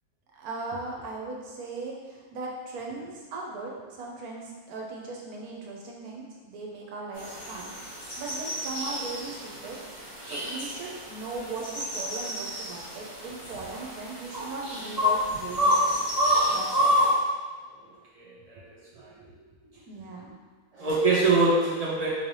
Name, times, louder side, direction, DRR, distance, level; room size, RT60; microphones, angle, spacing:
voice 1, 0.3-7.7 8.2-9.8 10.3-16.0 16.4-17.0 18.9-20.4, right 3 dB, 75° right, -1 dB, 1.1 m, -38 dB
sound 1, 7.2-17.1, equal, 80° left, 2.0 m, -29 dB
voice 2, 18.1-18.6 19.0-19.1 20.7-22.1, right 3 dB, 45° right, -7 dB, 0.5 m, -24 dB
3.9 x 3.2 x 2.7 m, 1.4 s
omnidirectional pair, 1.6 m